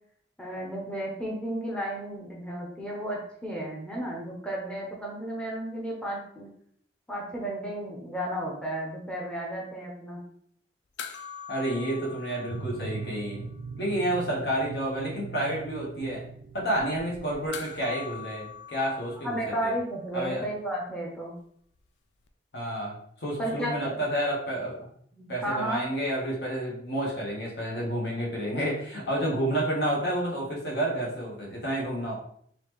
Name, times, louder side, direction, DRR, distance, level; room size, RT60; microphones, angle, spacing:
voice 1, 0.4-6.5 7.1-10.2 19.2-21.3 23.4-24.0 25.2-25.8, right 1 dB, 5° left, -3 dB, 0.7 m, -33 dB
sound 1, 11.0-13.6 13.9-14.0 17.5-20.1 22.3-22.4, left 7 dB, 85° left, 0.4 m, -43 dB
voice 2, 11.5-13.5 13.8-16.2 16.5-19.7 20.1-20.4 22.5-24.8 25.3-32.1, right 1 dB, 65° left, -2 dB, 1.2 m, -30 dB
sound 2, 12.5-18.4, right 5 dB, 85° right, 0.3 m, -41 dB
4.1 x 2.8 x 3.1 m, 0.65 s
head